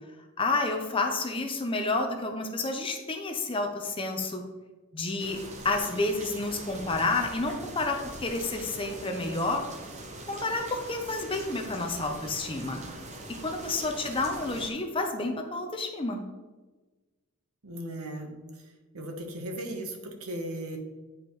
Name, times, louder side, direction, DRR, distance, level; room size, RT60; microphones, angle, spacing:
voice 1, 0.4-4.4 4.9-5.4 5.6-9.6 10.3-12.8 13.3-16.2, left 3 dB, 25° left, 4 dB, 0.6 m, -30 dB
sound 1, 5.2-14.7, right 2 dB, 30° right, 0.8 m, -42 dB
voice 2, 17.6-18.3 18.9-20.8, right 1 dB, 75° right, 4 dB, 1.1 m, -36 dB
8.7 x 4.9 x 3.1 m, 1.3 s
head